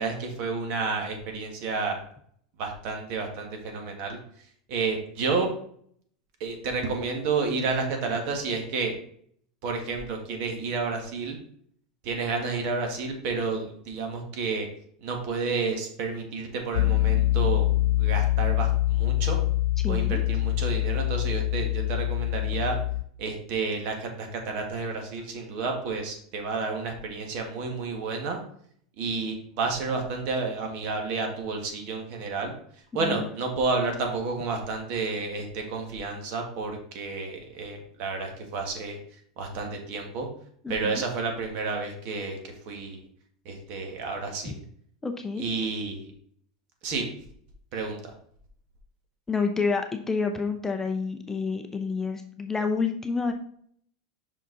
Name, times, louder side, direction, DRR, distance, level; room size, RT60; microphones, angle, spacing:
voice 1, 0.0-2.0 2.6-4.2 4.7-5.5 6.4-8.9 9.6-11.4 12.0-14.7 15.0-17.7 18.0-19.4 19.9-22.8 23.2-28.4 29.0-32.5 32.9-39.0 39.4-40.3 40.7-43.0 43.5-44.5 45.4-46.1 46.8-47.0 47.7-48.1, right 4 dB, 55° right, 3 dB, 1.8 m, -30 dB
Piano, 16.7-23.0, left 16 dB, 85° left, 0.4 m, -24 dB
voice 2, 19.8-20.2 33.0-33.3 40.6-41.0 45.0-45.4 49.3-53.3, left 4 dB, 15° left, 5 dB, 0.6 m, -29 dB
5.8 x 5.0 x 4.1 m, 0.63 s
supercardioid pair, 125°, 3 cm